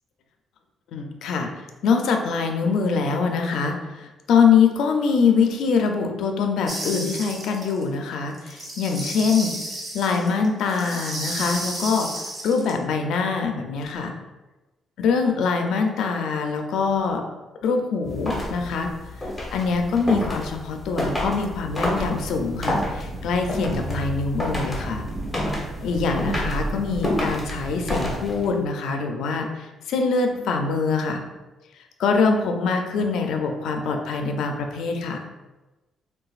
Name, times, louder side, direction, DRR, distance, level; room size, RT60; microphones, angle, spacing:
voice 1, 0.9-1.5 1.8-9.5 9.9-14.1 15.0-17.2 17.6-18.9 19.5-25.1 25.8-31.2 32.0-35.2, left 5 dB, 80° left, 4 dB, 0.4 m, -23 dB
sound 1, 6.7-7.8 8.3-12.7, right 1 dB, 40° right, 0.8 m, -33 dB
sound 2, 18.0-28.6, left 1 dB, 15° left, 0.9 m, -29 dB
sound 3, 22.2-28.2, right 3 dB, 55° right, 0.3 m, -36 dB
3.9 x 2.2 x 2.4 m, 1.1 s
cardioid pair, 90°, 0 cm